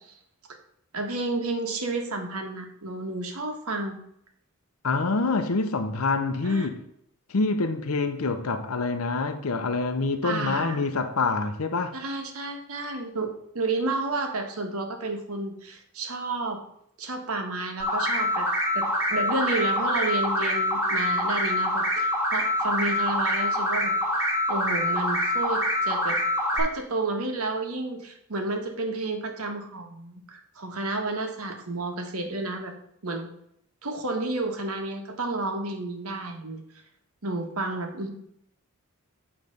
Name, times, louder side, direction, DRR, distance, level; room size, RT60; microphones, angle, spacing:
voice 1, 0.9-4.0 6.4-6.7 10.2-10.8 11.9-16.6 17.0-18.5 18.7-23.9 24.5-26.2 26.5-32.7 33.0-33.3 33.8-36.6 37.2-38.1, right 2 dB, 85° right, 1.4 m, -31 dB
voice 2, 4.8-6.8 7.3-11.9, left 3 dB, 80° left, 0.7 m, -26 dB
sound 1, 17.8-26.6, left 1 dB, 10° right, 2.5 m, -25 dB
8.7 x 3.3 x 6.4 m
head